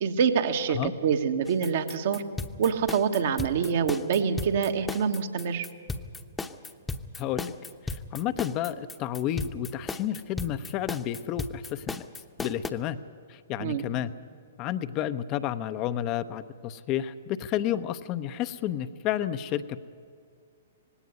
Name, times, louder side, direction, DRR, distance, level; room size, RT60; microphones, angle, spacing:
voice 1, 0.0-2.2 2.6-5.7 13.6-13.8, right 6 dB, 55° right, 7 dB, 1.4 m, -26 dB
sound 1, 1.5-12.7, left 3 dB, 10° left, 1.0 m, -35 dB
voice 2, 7.2-7.5 7.8-12.0 12.4-13.0 13.3-14.1 14.6-19.8, left 11 dB, 35° left, 11 dB, 0.7 m, -31 dB
19.0 x 17.0 x 9.6 m, 2.2 s
figure-of-eight pair, 115°, 0 cm